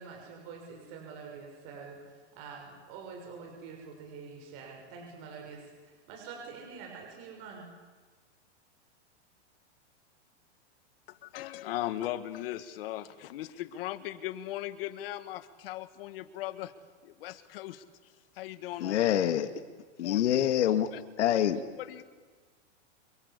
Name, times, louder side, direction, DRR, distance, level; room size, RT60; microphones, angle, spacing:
voice 1, 0.0-7.7, right 5 dB, 40° right, 1 dB, 6.7 m, -46 dB
voice 2, 11.1-16.7 17.0-19.0 20.0-20.2 20.9-21.0 21.8-22.0, left 14 dB, 55° left, 12 dB, 1.9 m, -38 dB
voice 3, 18.8-19.5 20.0-20.9 21.2-21.6, left 11 dB, 75° left, 9 dB, 2.2 m, -26 dB
28.0 x 24.0 x 8.5 m, 1.4 s
supercardioid pair, 160°, 35 cm